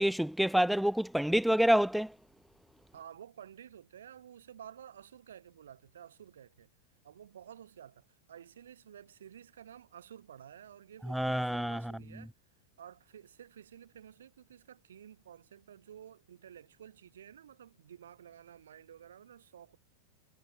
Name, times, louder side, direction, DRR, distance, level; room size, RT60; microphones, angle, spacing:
voice 1, 0.0-2.1 11.1-11.8, equal, ahead, 0.3 m, -27 dB
voice 2, 2.9-6.7 7.0-12.3 12.8-19.8, right 9 dB, 80° right, 5.5 m, -52 dB
hypercardioid pair, 100°, 0 cm